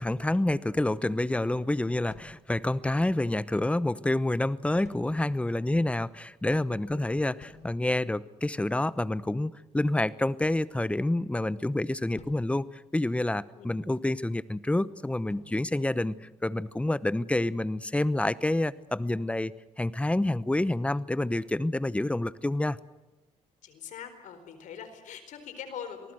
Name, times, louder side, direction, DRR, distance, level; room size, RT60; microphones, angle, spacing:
voice 1, 0.0-19.5 19.8-22.8, left 1 dB, 10° left, 16 dB, 0.9 m, -28 dB
sound 1, 2.1-3.2 4.8-5.6 7.4-8.1 10.4-11.5 12.2-13.6 15.3-16.8, left 4 dB, 65° left, 4.4 m, -55 dB
voice 2, 23.6-26.1, left 8 dB, 85° left, 9 dB, 4.3 m, -42 dB
27.0 x 19.5 x 7.9 m, 1.1 s
cardioid pair, 90°, 13 cm